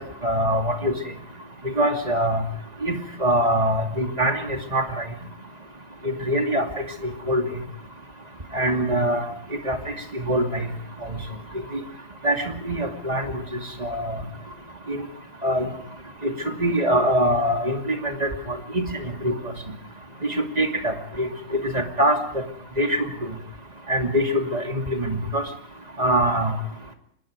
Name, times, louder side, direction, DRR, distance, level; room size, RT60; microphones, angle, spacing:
voice 1, 0.2-1.0 1.6-2.4 2.8-5.0 6.0-6.7 7.0-7.4 8.5-9.3 9.6-9.8 10.1-10.6 11.5-11.8 12.2-13.4 13.8-14.2 14.9-15.0 15.4-15.7 16.2-16.3 16.6-19.3 20.2-21.3 21.6-22.4 22.8-23.1 23.9-25.4 26.0-26.5, right 1 dB, 25° right, 3 dB, 2.7 m, -23 dB
25.0 x 20.0 x 5.2 m, 0.66 s
omnidirectional pair, 1.7 m